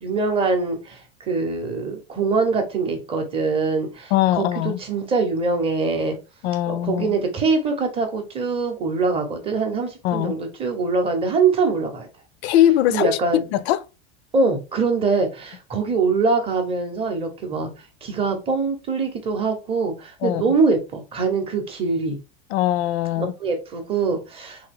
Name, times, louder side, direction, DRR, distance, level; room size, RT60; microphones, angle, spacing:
voice 1, 0.0-6.2 6.7-12.1 12.9-13.5 14.3-17.7 18.0-22.2 23.2-24.7, right 4 dB, 15° right, 0.6 m, -23 dB
voice 2, 4.1-4.8 6.4-7.1 10.0-10.3 12.4-13.8 20.2-20.5 22.5-23.3, left 13 dB, 75° left, 0.5 m, -21 dB
3.4 x 2.7 x 3.3 m
supercardioid pair, 160°, 33 cm